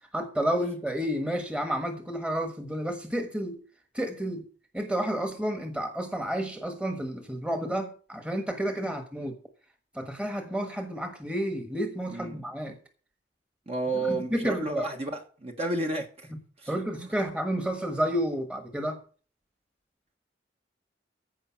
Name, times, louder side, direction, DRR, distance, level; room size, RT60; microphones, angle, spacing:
voice 1, 0.1-3.6 3.9-4.4 4.7-9.3 9.9-12.8 14.1-14.9 16.3-16.4 16.7-19.0, equal, 5° right, 1.4 m, -30 dB
voice 2, 12.1-12.4 13.7-16.3 16.6-16.7 17.0-17.1, right 2 dB, 35° right, 1.3 m, -31 dB
15.0 x 5.3 x 7.4 m
head